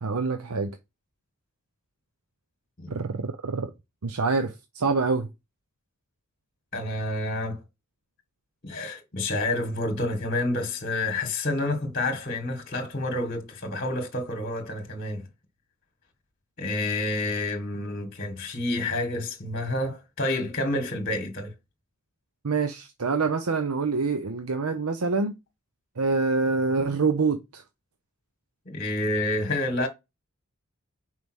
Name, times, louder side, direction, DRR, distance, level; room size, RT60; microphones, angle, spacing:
voice 1, 0.0-0.7 2.9-3.7 4.0-5.3 22.4-25.4 26.0-27.6, right 4 dB, 90° right, 0.8 m, -26 dB
voice 2, 6.7-7.6 8.6-15.3 16.6-21.5 28.6-29.9, left 2 dB, 40° left, 1.6 m, -29 dB
5.4 x 4.7 x 6.2 m
head